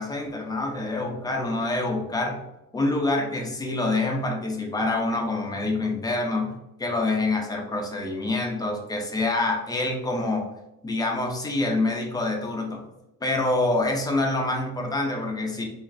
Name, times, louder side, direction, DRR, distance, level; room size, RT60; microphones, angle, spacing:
voice 1, 0.0-2.4 2.7-6.5 6.8-10.5 10.8-12.8 13.2-15.6, left 2 dB, 15° left, 1 dB, 0.3 m, -26 dB
3.0 x 2.4 x 2.4 m, 0.90 s
cardioid pair, 145°, 32 cm